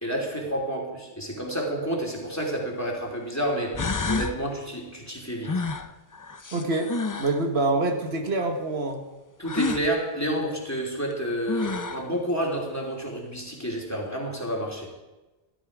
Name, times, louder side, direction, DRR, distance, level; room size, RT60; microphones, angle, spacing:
voice 1, 0.0-3.8 4.1-5.6 9.4-14.9, right 1 dB, 15° left, -1 dB, 2.8 m, -29 dB
sound 1, 2.3-2.4 3.3-3.4 3.7-4.4 5.4-7.4 9.4-9.9 11.1-11.2 11.5-12.1, left 3 dB, 35° left, 0.3 m, -29 dB
voice 2, 6.5-6.9 7.2-9.0, right 2 dB, 75° right, 4 dB, 1.5 m, -25 dB
14.5 x 12.5 x 4.9 m, 1.1 s
omnidirectional pair, 1.1 m